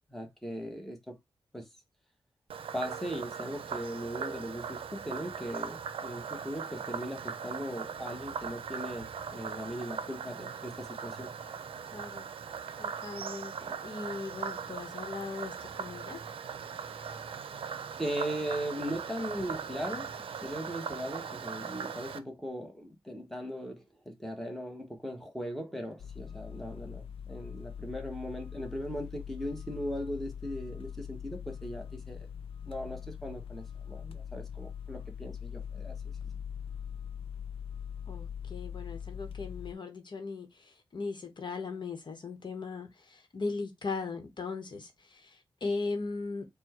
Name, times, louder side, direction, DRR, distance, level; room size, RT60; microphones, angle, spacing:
voice 1, 0.1-1.1 1.5-1.7 2.7-11.3 18.0-32.3 32.6-36.4, equal, 5° left, 1.2 m, -39 dB
Frog, 2.5-22.2, right 6 dB, 85° right, 0.5 m, -39 dB
voice 2, 11.9-12.3 12.8-16.2 38.1-46.4, left 4 dB, 55° left, 1.1 m, -38 dB
sound 1, 26.0-39.7, left 8 dB, 85° left, 0.4 m, -42 dB
4.4 x 2.2 x 4.2 m
cardioid pair, 70°, 9 cm